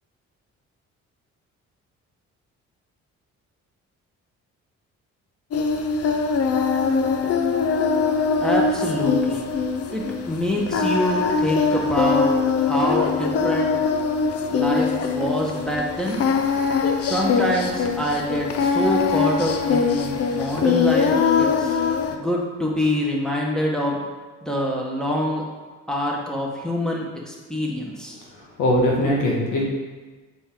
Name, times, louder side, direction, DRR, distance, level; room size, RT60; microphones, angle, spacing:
Singing, 5.5-22.2, left 5 dB, 55° left, 0.6 m, -22 dB
voice 1, 8.4-9.4 9.9-12.3 12.6-13.7 14.5-16.2 17.0-21.8 22.1-24.0 24.4-25.4 25.9-28.1, equal, ahead, -2 dB, 1.3 m, -25 dB
voice 2, 28.6-29.7, left 1 dB, 90° left, -3 dB, 1.7 m, -20 dB
7.0 x 4.1 x 3.8 m, 1.3 s
cardioid pair, 90°, 30 cm